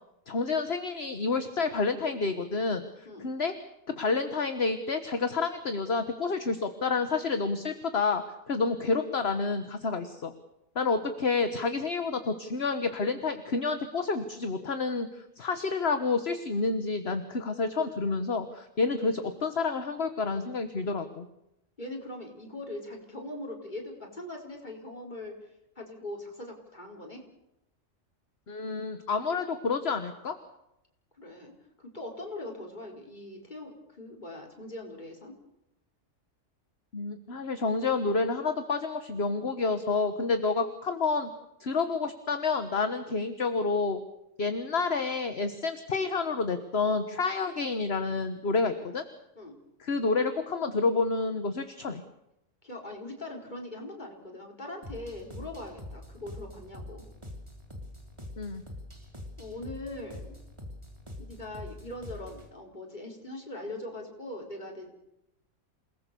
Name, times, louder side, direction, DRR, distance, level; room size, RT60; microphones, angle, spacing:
voice 1, 0.3-3.5 4.0-10.3 10.7-21.3 28.5-30.4 36.9-41.3 41.6-44.0 44.4-49.0 49.8-52.0 58.4-58.6, left 4 dB, 50° left, 9 dB, 1.6 m, -29 dB
voice 2, 21.8-25.5 25.7-27.2 31.2-31.5 31.8-35.3 49.3-49.6 52.6-57.0 59.4-60.4 61.2-65.0, left 1 dB, 35° left, 1 dB, 4.9 m, -41 dB
sound 1, 54.8-62.5, left 1 dB, 20° right, 3.7 m, -44 dB
28.5 x 19.5 x 7.0 m, 0.85 s
omnidirectional pair, 1.3 m